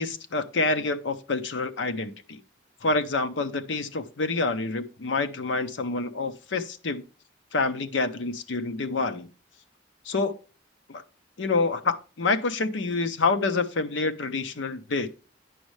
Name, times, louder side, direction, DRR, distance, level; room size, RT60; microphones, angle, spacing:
voice 1, 0.0-2.4 2.8-7.0 7.5-9.3 10.1-10.3 10.9-11.0 11.4-15.1, left 3 dB, 80° left, 0.7 m, -27 dB
9.3 x 6.3 x 3.2 m
head